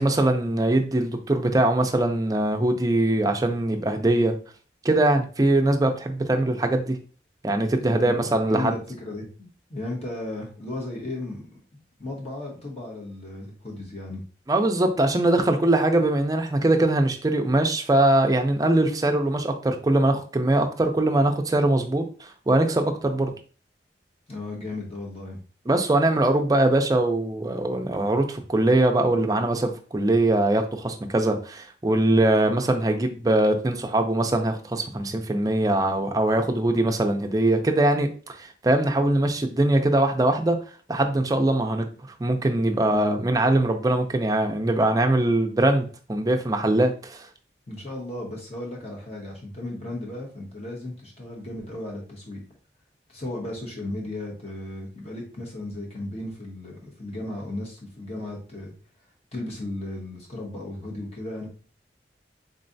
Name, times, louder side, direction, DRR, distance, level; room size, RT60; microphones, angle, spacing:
voice 1, 0.0-4.3 4.8-7.0 7.4-8.7 14.5-23.3 25.7-40.6 40.9-41.9 42.2-47.3, right 1 dB, 20° right, 4 dB, 0.4 m, -22 dB
voice 2, 7.8-11.6 12.0-14.2 24.3-25.4 42.8-43.2 47.7-52.4 53.1-58.7 59.3-61.5, left 2 dB, 35° left, -2 dB, 1.2 m, -35 dB
3.8 x 3.2 x 2.6 m, 0.39 s
head